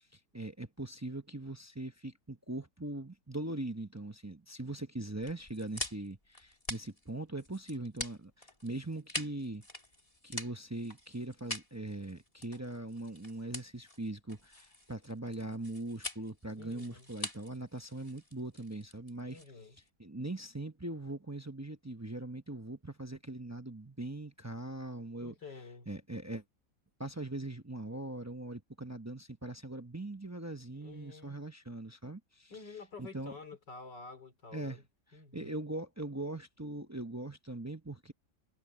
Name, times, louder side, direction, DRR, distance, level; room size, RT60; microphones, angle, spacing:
voice 1, 0.0-9.6 10.2-19.4 20.0-25.3 25.9-26.4 27.0-32.5 33.0-33.3 34.5-34.8 35.3-38.1, right 2 dB, 20° right, 0.4 m, -41 dB
sound 1, 5.2-19.9, left 1 dB, 20° left, 3.2 m, -45 dB
voice 2, 16.6-17.1 19.3-19.8 25.2-25.9 30.7-31.4 32.5-34.8 35.1-35.5, left 4 dB, 75° left, 4.1 m, -49 dB
omnidirectional pair, 1.9 m